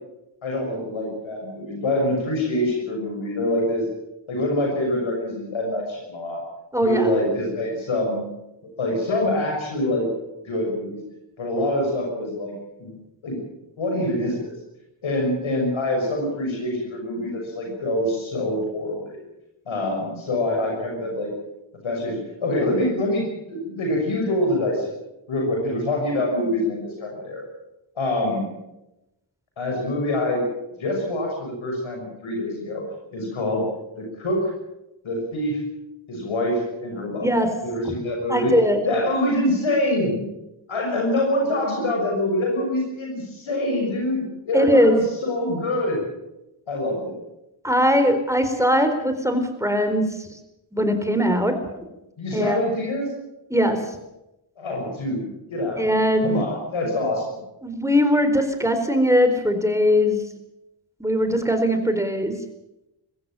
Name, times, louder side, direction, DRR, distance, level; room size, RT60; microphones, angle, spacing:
voice 1, 0.4-3.9 4.3-6.4 6.8-8.3 8.6-10.1 10.4-11.0 11.4-12.5 12.8-12.9 13.2-13.4 13.8-14.5 15.0-19.2 19.7-21.3 21.8-24.9 25.3-27.4 28.0-28.5 29.6-30.4 30.8-32.8 33.1-33.6 34.0-34.5 35.0-35.6 36.1-37.3 37.6-38.5 38.8-40.2 40.7-46.1 46.7-47.1 52.2-53.1 54.6-55.2 55.5-57.3, left 1 dB, 85° left, 1 dB, 6.4 m, -25 dB
voice 2, 6.7-7.1 37.2-37.5 37.8-37.9 38.3-38.9 44.5-45.0 47.6-50.4 50.7-51.6 52.3-52.6 53.5-54.0 55.8-56.4 57.6-60.2 61.0-62.4, equal, 5° right, 7 dB, 4.2 m, -20 dB
22.0 x 15.5 x 9.1 m, 0.92 s
cardioid pair, 65°, 47 cm